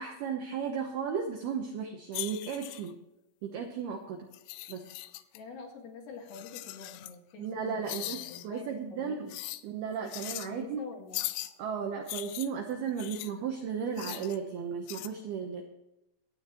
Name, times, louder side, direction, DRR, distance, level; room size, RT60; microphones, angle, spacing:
voice 1, 0.0-3.0 3.4-4.3 4.7-4.8 7.4-9.3 9.6-10.8 11.6-15.6, right 6 dB, 75° right, 3 dB, 2.3 m, -35 dB
sound 1, 2.1-2.9 4.3-5.4 6.3-7.2 7.9-8.5 9.3-9.6 10.1-10.5 11.1-11.5 12.1-13.3 14.0-14.4 14.9-15.1, left 17 dB, 85° left, 2.6 m, -39 dB
voice 2, 5.3-9.4 10.4-11.3, left 5 dB, 60° left, 1 dB, 3.6 m, -46 dB
23.5 x 9.1 x 3.1 m, 0.91 s
omnidirectional pair, 6.0 m